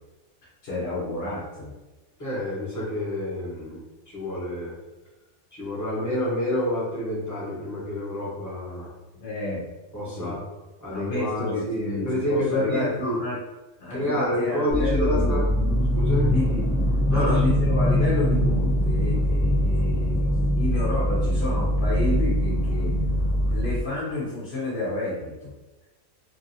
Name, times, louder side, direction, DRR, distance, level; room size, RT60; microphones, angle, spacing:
voice 1, 0.6-1.7 9.2-9.6 10.2-10.4 10.9-13.4 13.8-15.4 16.2-16.7 17.1-23.0 23.5-25.5, left 2 dB, 50° left, -8 dB, 0.9 m, -30 dB
voice 2, 2.2-3.8 4.1-4.7 5.5-8.9 9.9-10.4 10.8-13.2 13.9-15.4 15.9-16.3 17.1-17.5, left 1 dB, 15° left, -7 dB, 0.9 m, -28 dB
sound 1, 14.7-23.8, equal, 10° right, 0.3 m, -22 dB
3.1 x 2.5 x 2.6 m, 1.1 s
omnidirectional pair, 1.5 m